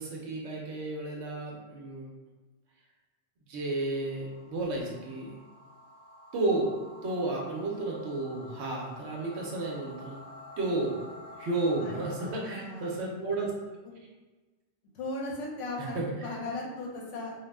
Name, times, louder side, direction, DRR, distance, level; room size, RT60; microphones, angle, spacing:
voice 1, 0.0-2.1 3.5-5.3 6.3-6.7 7.0-10.2 10.6-11.1 11.4-13.5 15.9-16.3, right 2 dB, 65° right, -2 dB, 0.8 m, -32 dB
sound 1, 3.6-12.3, left 1 dB, 30° right, 1.1 m, -49 dB
voice 2, 11.8-13.1 14.9-17.3, left 2 dB, 70° left, -3 dB, 1.0 m, -37 dB
2.3 x 2.0 x 3.3 m, 1.2 s
omnidirectional pair, 1.3 m